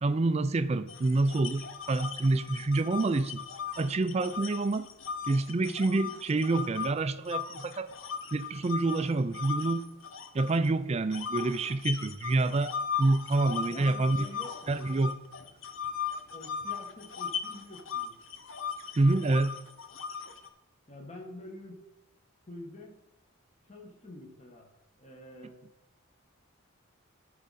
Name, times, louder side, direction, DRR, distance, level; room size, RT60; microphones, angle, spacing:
voice 1, 0.0-3.4 3.8-4.9 5.3-7.9 8.3-9.9 10.3-14.3 14.7-15.1 19.0-19.6, right 2 dB, 30° right, 0.4 m, -27 dB
sound 1, 0.9-6.9 7.3-10.7 11.1-20.5, left 7 dB, 60° left, 0.8 m, -38 dB
voice 2, 13.7-14.9 16.3-18.1 20.9-21.9 22.5-23.0 23.6-24.7 25.0-25.6, left 1 dB, 30° left, 1.6 m, -47 dB
14.0 x 4.9 x 4.2 m
head